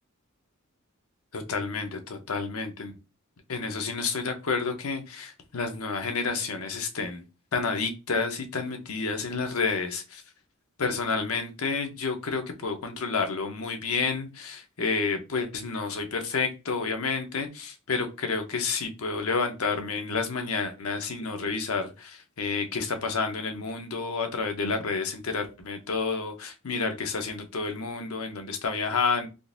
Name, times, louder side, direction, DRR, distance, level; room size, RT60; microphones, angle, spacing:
voice 1, 1.3-3.0 3.5-7.2 7.5-10.2 10.8-29.3, left 4 dB, 75° left, 6 dB, 0.8 m, -30 dB
3.7 x 2.5 x 2.5 m, 0.28 s
head